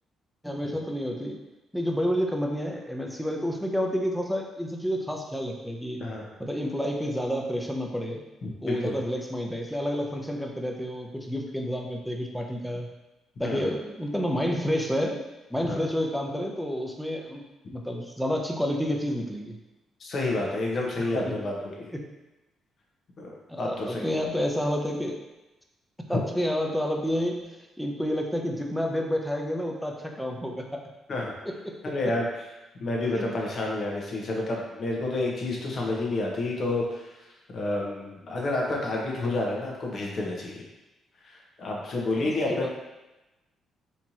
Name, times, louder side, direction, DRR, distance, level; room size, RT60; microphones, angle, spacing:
voice 1, 0.4-1.4 1.7-6.0 6.4-8.2 8.6-12.9 13.4-15.2 15.5-17.4 17.7-19.6 21.1-21.3 21.9-22.0 23.5-25.2 26.1-30.8 31.5-31.9 33.2-33.3 42.2-42.7, equal, ahead, 1 dB, 0.6 m, -29 dB
voice 2, 8.4-9.0 13.4-13.7 15.6-15.8 20.0-21.9 23.2-23.3 23.6-24.2 26.1-26.2 31.1-31.3 31.8-32.2 32.8-37.2 37.5-40.6 41.2-42.7, left 2 dB, 50° left, -2 dB, 1.0 m, -29 dB
4.3 x 2.9 x 2.8 m, 1.0 s
cardioid pair, 90°, 0 cm